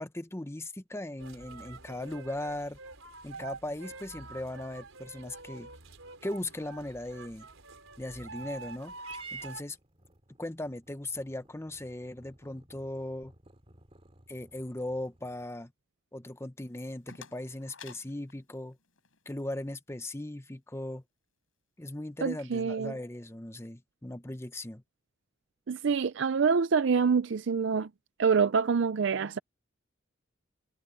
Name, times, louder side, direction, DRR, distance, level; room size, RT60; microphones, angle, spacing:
voice 1, 0.0-2.8 3.2-5.7 6.2-7.5 8.0-9.8 10.4-13.3 14.3-15.7 16.1-18.8 19.3-21.0 21.8-24.8, left 1 dB, 15° left, 0.8 m, -38 dB
sound 1, 1.2-9.6, right 3 dB, 85° right, 4.4 m, -47 dB
Purr / Meow, 9.0-15.5, right 4 dB, 30° right, 2.6 m, -52 dB
sound 2, 16.6-19.4, left 6 dB, 80° left, 7.1 m, -53 dB
voice 2, 22.2-22.9 25.7-27.9 28.2-29.4, right 5 dB, 60° right, 0.5 m, -26 dB
head